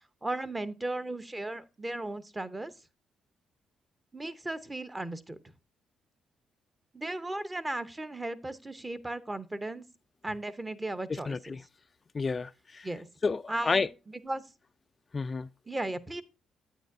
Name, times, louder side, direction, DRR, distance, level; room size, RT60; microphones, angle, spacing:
voice 1, 0.2-2.7 4.1-5.4 6.9-9.8 10.2-11.4 12.8-13.1 13.5-14.4 15.7-16.2, right 2 dB, 15° right, 0.8 m, -36 dB
voice 2, 11.1-11.6 12.1-12.9 13.2-13.9 15.1-15.5, left 4 dB, 30° left, 0.3 m, -30 dB
9.1 x 8.9 x 2.6 m
cardioid pair, 90°, 0 cm